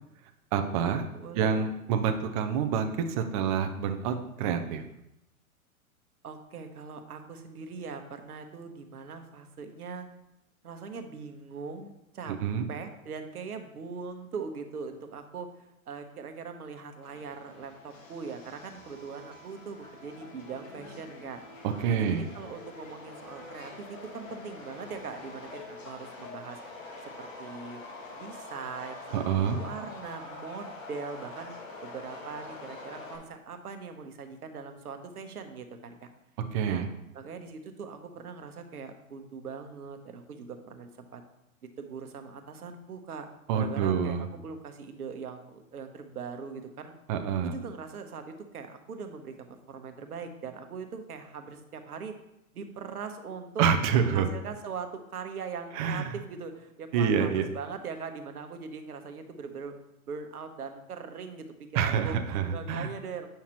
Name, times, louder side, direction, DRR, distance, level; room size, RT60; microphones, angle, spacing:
voice 1, 0.5-1.0 1.3-4.8 12.4-12.7 21.6-22.2 29.1-29.6 36.5-36.9 43.5-44.2 47.1-47.5 53.6-54.3 55.7-56.1 56.9-57.5 61.7-62.9, right 7 dB, 25° right, 6 dB, 0.4 m, -27 dB
voice 2, 1.1-1.7 6.2-10.1 10.6-12.4 12.7-21.4 21.9-26.6 27.0-27.8 28.1-29.0 29.4-36.1 36.6-36.9 37.1-41.2 41.8-43.3 43.5-46.9 47.4-52.1 52.5-53.6 53.9-59.7 60.1-63.3, right 5 dB, 90° right, 7 dB, 1.0 m, -41 dB
Subway metro underground, 17.0-33.2, left 2 dB, 60° left, 1.7 m, -45 dB
8.7 x 5.7 x 2.9 m, 0.86 s
hypercardioid pair, 120°, 44 cm